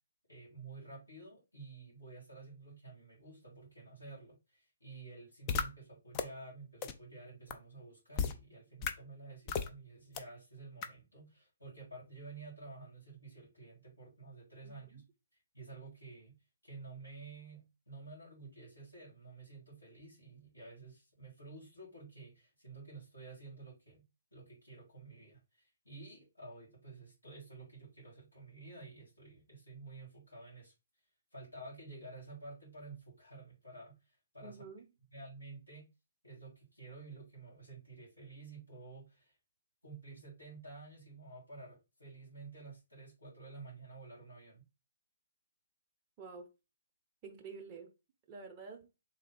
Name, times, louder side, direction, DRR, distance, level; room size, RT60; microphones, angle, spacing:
voice 1, 0.3-15.0 15.5-16.4 16.6-24.0 24.3-30.7 31.3-34.6 35.1-35.9 36.2-39.4 39.8-44.6, right 3 dB, 85° left, 2.4 m, -51 dB
sound 1, 5.5-5.6 6.1-6.2 6.8-6.9 7.5-7.6 8.2-8.3 8.8-8.9 9.5-9.7 10.2-10.3 10.8-10.9, left 6 dB, 25° left, 0.4 m, -33 dB
voice 2, 14.6-15.0 34.4-34.9 46.2-46.5 47.2-47.9 48.3-48.9, right 4 dB, 25° right, 0.6 m, -49 dB
3.4 x 2.7 x 3.9 m
figure-of-eight pair, 130°, 0 cm